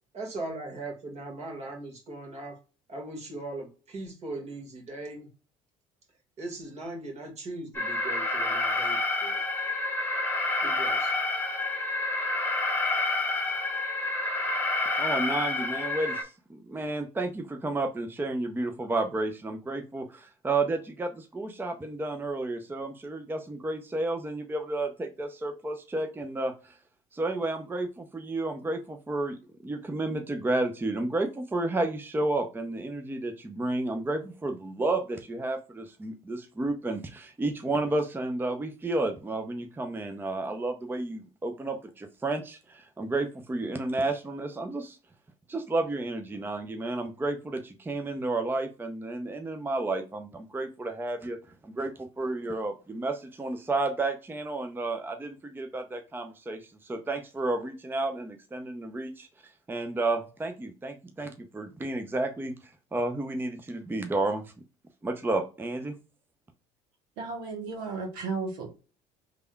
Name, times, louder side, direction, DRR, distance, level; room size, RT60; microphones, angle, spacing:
voice 1, 0.1-2.6 2.9-5.3 6.4-9.4 10.6-11.1, right 2 dB, 40° right, 2 dB, 1.7 m, -39 dB
Alarm, 7.7-16.2, left 2 dB, 10° left, 1.1 m, -28 dB
voice 2, 15.0-26.8 27.1-29.4 29.6-45.0 45.5-51.4 51.6-59.3 59.7-64.5 65.0-65.9, right 2 dB, 15° right, 6 dB, 0.5 m, -31 dB
voice 3, 67.2-68.7, right 4 dB, 75° right, 3 dB, 0.9 m, -34 dB
3.4 x 3.4 x 2.2 m, 0.33 s
hypercardioid pair, 75°, 16 cm